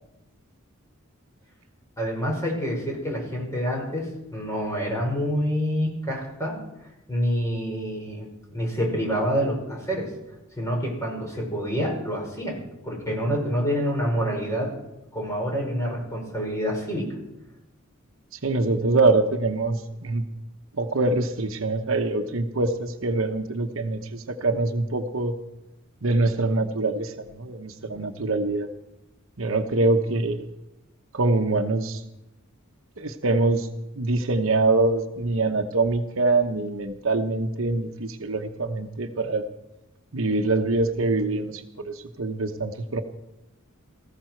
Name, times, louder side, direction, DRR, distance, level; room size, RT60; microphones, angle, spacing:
voice 1, 2.0-6.6 7.1-10.1 10.6-14.7 15.1-17.1, equal, 15° left, -2 dB, 5.1 m, -27 dB
voice 2, 18.4-20.2 20.8-25.3 26.0-28.7 29.4-30.5 31.1-32.0 33.0-33.7 34.0-39.4 40.1-43.0, right 2 dB, 65° right, 6 dB, 1.0 m, -24 dB
19.0 x 15.0 x 4.6 m, 0.95 s
head